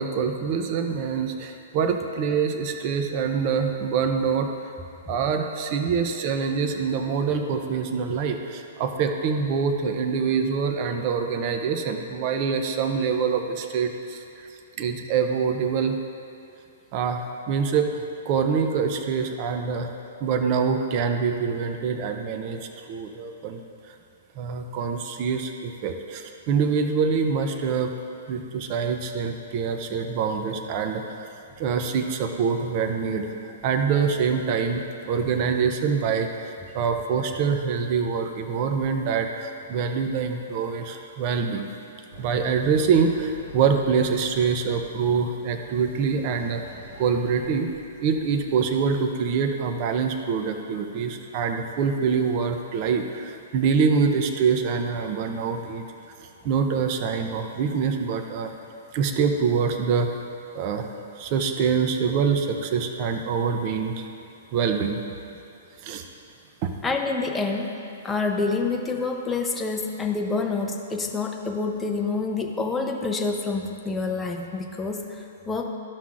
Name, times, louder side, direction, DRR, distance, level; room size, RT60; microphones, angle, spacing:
voice 1, 0.0-4.5 5.1-14.5 14.8-16.0 16.9-19.9 20.2-23.6 23.9-24.0 24.4-27.9 28.3-31.3 31.6-41.7 42.2-47.7 48.0-55.9 56.2-58.5 58.9-60.2 60.5-60.9 61.2-64.1 64.5-65.0 65.8-66.0 66.6-66.7, right 6 dB, 35° right, 5 dB, 0.5 m, -25 dB
sound 1, 42.1-48.8, right 1 dB, 80° right, 1.9 m, -45 dB
voice 2, 66.8-67.7 68.0-75.6, left 3 dB, 10° left, 1 dB, 0.6 m, -27 dB
13.5 x 5.7 x 2.5 m, 2.7 s
hypercardioid pair, 155°, 0 cm